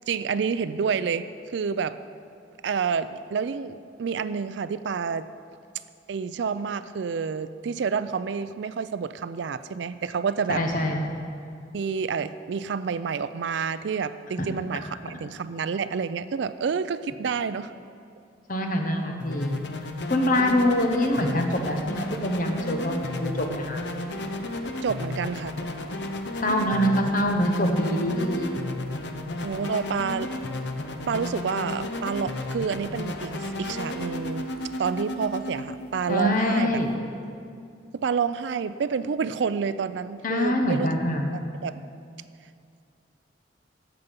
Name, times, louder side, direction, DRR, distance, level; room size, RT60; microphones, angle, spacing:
voice 1, 0.1-1.3 1.5-2.0 2.6-5.3 6.1-10.6 11.7-17.7 24.8-25.5 29.4-30.3 31.1-33.3 33.6-34.5 34.8-36.7 37.9-40.9 41.3-41.8, right 6 dB, 70° right, 14 dB, 0.4 m, -29 dB
voice 2, 10.5-11.0 14.4-14.5 18.5-19.6 20.1-23.8 26.4-28.5 36.1-36.9 40.2-41.3, left 1 dB, 45° left, 3 dB, 1.2 m, -24 dB
sound 1, 19.2-36.9, left 1 dB, 65° left, 0.7 m, -33 dB
12.5 x 8.0 x 5.3 m, 2.4 s
head